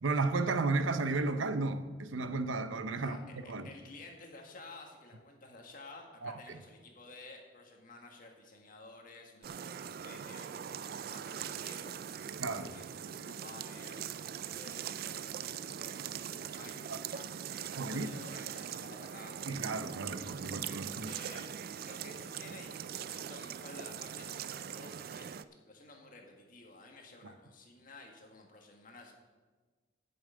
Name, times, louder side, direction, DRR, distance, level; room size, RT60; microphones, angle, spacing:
voice 1, 0.0-3.2 3.5-3.7 6.2-6.6 12.4-12.7 16.9-17.0 17.7-18.1 19.5-21.1 27.2-27.3, right 3 dB, 80° right, 0.7 m, -33 dB
voice 2, 3.4-14.1 14.5-19.4 21.0-25.3 25.7-29.1, left 2 dB, 45° left, 1.7 m, -53 dB
sound 1, 9.4-25.4, right 8 dB, 50° right, 0.3 m, -42 dB
8.7 x 6.9 x 8.4 m
head